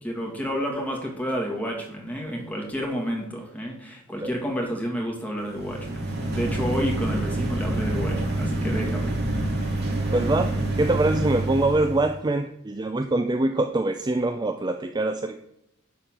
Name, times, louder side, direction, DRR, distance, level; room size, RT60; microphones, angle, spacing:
voice 1, 0.0-9.2, equal, 5° left, -1 dB, 2.2 m, -30 dB
sound 1, 5.4-12.1, right 2 dB, 50° right, 1.9 m, -27 dB
voice 2, 10.1-15.4, right 2 dB, 20° right, 7 dB, 0.5 m, -24 dB
11.0 x 4.4 x 7.4 m, 0.82 s
head